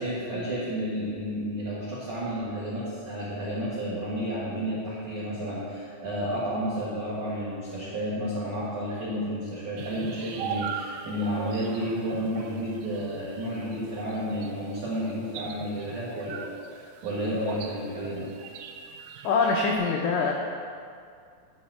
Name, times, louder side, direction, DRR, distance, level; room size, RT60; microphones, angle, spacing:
voice 1, 0.0-18.3, equal, 65° right, -9 dB, 1.7 m, -31 dB
sound 1, 9.8-19.8, right 7 dB, 85° right, 3.3 m, -40 dB
voice 2, 19.2-20.3, left 4 dB, 85° left, -1 dB, 2.4 m, -24 dB
11.5 x 4.0 x 7.6 m, 2.2 s
omnidirectional pair, 5.8 m